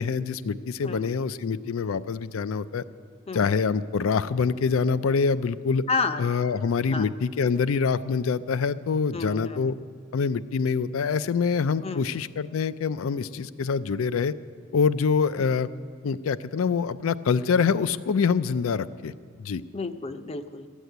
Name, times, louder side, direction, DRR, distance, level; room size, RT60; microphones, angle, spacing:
voice 1, 0.0-2.8 3.3-5.8 6.2-9.8 10.1-14.3 14.7-15.7 16.0-19.1 19.4-19.6, left 5 dB, 75° left, 16 dB, 0.4 m, -25 dB
voice 2, 5.9-6.2 6.9-7.1 9.1-9.8 11.8-12.1 15.4-15.5 19.7-20.7, left 4 dB, 30° left, 10 dB, 0.6 m, -31 dB
14.0 x 8.2 x 9.2 m, 2.1 s
head